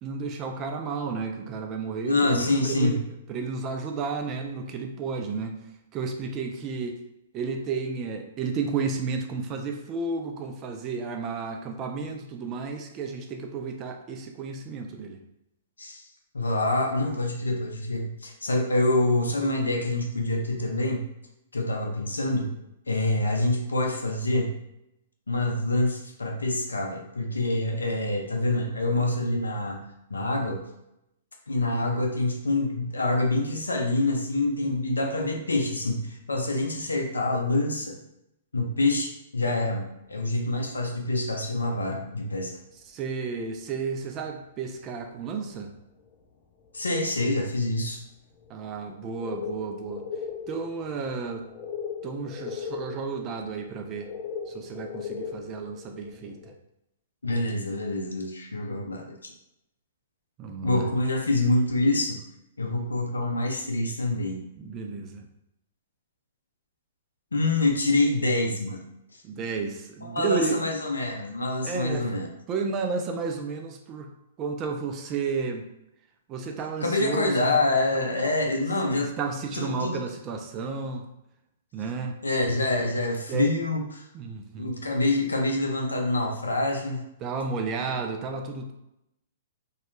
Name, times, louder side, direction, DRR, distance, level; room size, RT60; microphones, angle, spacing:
voice 1, 0.0-5.5 5.9-7.0 7.3-15.2 40.2-40.3 42.9-45.7 48.5-50.0 50.5-51.4 52.0-54.1 54.5-56.5 60.4-60.9 64.6-65.3 69.2-70.6 71.6-72.1 72.5-74.1 74.4-75.6 76.3-77.6 77.9-78.1 78.9-81.1 81.7-82.1 83.3-83.5 84.1-84.7 87.2-88.7, right 4 dB, 30° right, 4 dB, 0.4 m, -32 dB
voice 2, 2.0-2.9 15.8-16.1 16.3-21.0 21.5-22.5 22.9-24.5 25.3-30.6 31.5-38.0 38.5-42.6 46.7-48.0 57.2-59.3 60.6-62.2 62.6-64.4 67.3-68.8 70.0-72.3 76.8-79.1 79.5-80.0 82.2-84.0 84.6-87.0, left 2 dB, 90° left, 1 dB, 0.4 m, -26 dB
sound 1, 41.0-41.6 42.6-42.7 43.5-43.7 44.2-44.3 44.5-44.6 45.8-46.1 46.7-47.0 47.4-47.7 48.3-48.5 48.9-56.5, left 6 dB, 30° left, 0.4 m, -38 dB
2.2 x 2.0 x 3.0 m, 0.84 s
hypercardioid pair, 120°, 0 cm